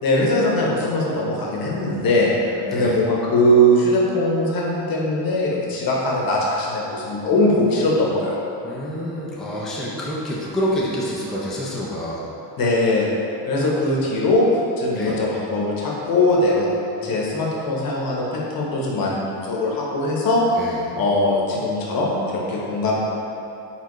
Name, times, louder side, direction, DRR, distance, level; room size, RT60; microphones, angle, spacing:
voice 1, 0.0-8.4 12.6-13.1 13.5-14.5 14.8-16.7 17.0-20.4 21.0-23.0, left 1 dB, 45° left, -3 dB, 1.1 m, -21 dB
voice 2, 2.6-3.0 8.6-12.2 14.9-15.2 16.9-17.3 20.6-20.8, equal, ahead, -7 dB, 0.6 m, -27 dB
4.4 x 3.8 x 3.1 m, 2.9 s
supercardioid pair, 100°, 47 cm